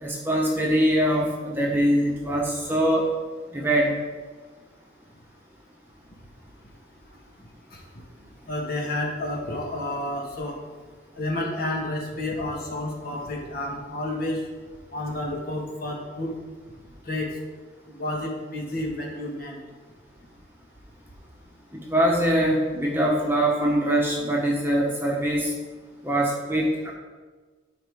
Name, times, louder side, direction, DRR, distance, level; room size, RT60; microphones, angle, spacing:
voice 1, 0.0-3.0 3.5-3.9 21.9-25.5 26.0-26.9, right 1 dB, 10° right, -2 dB, 1.1 m, -23 dB
voice 2, 8.5-10.6 11.2-14.4 14.9-16.3 17.0-17.3 17.9-19.6, left 1 dB, 50° left, -1 dB, 1.7 m, -30 dB
13.5 x 4.9 x 3.6 m, 1.4 s
head